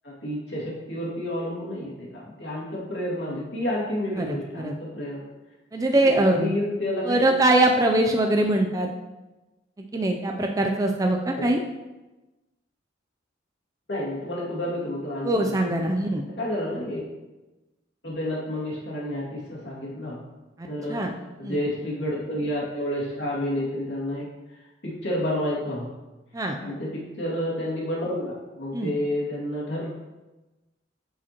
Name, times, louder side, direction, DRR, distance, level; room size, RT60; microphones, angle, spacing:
voice 1, 0.0-5.3 6.2-7.4 11.4-11.5 13.9-15.5 15.8-15.9 16.4-17.0 18.0-20.2 20.7-25.9 26.6-29.9, left 1 dB, 65° left, -6 dB, 2.2 m, -30 dB
voice 2, 4.2-4.7 5.7-6.5 7.0-8.9 9.9-11.6 15.2-16.2 20.6-21.1 21.4-21.6 26.3-26.6 28.7-28.9, right 1 dB, 20° right, 2 dB, 0.4 m, -22 dB
8.0 x 5.0 x 2.9 m, 1.1 s
head